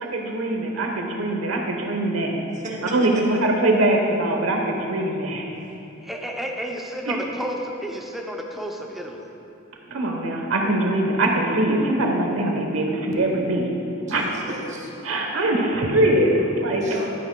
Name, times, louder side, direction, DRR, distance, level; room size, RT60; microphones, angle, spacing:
voice 1, 0.0-2.3 2.9-5.5 7.1-7.2 9.9-13.7 14.1-14.3 15.0-16.8, right 1 dB, 80° right, 1 dB, 1.1 m, -22 dB
voice 2, 2.5-3.4 14.1-14.9 16.7-17.1, right 1 dB, 35° right, -2 dB, 1.1 m, -34 dB
voice 3, 6.0-9.2, equal, ahead, 0 dB, 0.6 m, -31 dB
11.0 x 9.7 x 2.3 m, 2.8 s
head